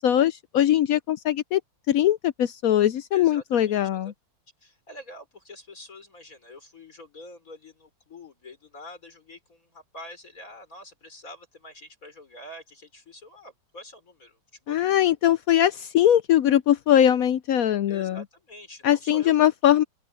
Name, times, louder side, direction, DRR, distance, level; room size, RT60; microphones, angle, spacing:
voice 1, 0.0-1.6 1.9-4.1 14.7-18.2 18.8-19.8, left 11 dB, 70° left, 0.8 m, -21 dB
voice 2, 3.1-4.1 4.6-14.8 15.0-15.2 17.9-19.8, left 1 dB, 45° left, 4.8 m, -46 dB
open air
omnidirectional pair, 2.0 m